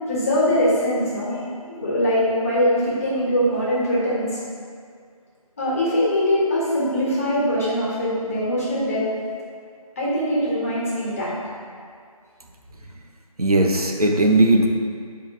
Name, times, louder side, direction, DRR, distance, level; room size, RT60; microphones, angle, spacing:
voice 1, 0.1-4.4 5.6-9.0 10.0-11.3, equal, 25° left, -7 dB, 1.4 m, -22 dB
voice 2, 13.4-14.7, right 2 dB, 75° right, 1 dB, 1.0 m, -17 dB
5.2 x 4.9 x 6.0 m, 2.2 s
figure-of-eight pair, 165°, 19 cm